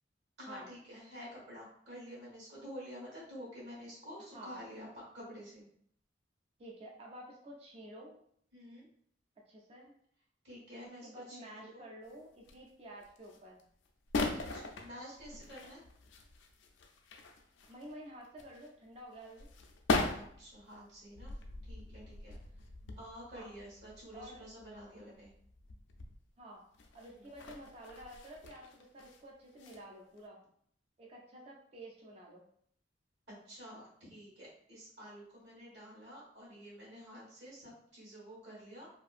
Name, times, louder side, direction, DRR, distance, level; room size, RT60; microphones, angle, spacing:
voice 1, 0.4-4.9 5.1-5.6 8.5-8.9 10.4-11.8 14.3-15.8 20.1-21.3 21.7-22.4 23.0-25.3 27.0-27.3 33.4-38.9, equal, 65° right, -5 dB, 1.4 m, -49 dB
voice 2, 6.6-8.2 9.5-9.9 11.0-13.6 17.7-19.5 23.3-23.5 24.1-24.5 26.4-26.6 26.9-30.4 31.0-32.5, right 1 dB, 35° right, -1 dB, 0.3 m, -51 dB
sound 1, 12.1-12.7 13.0-13.6 13.9-17.9 18.2-26.2 26.7-29.2 29.5-29.8 30.2-30.3, left 3 dB, 85° left, 0.4 m, -40 dB
2.6 x 2.4 x 2.4 m, 0.65 s
head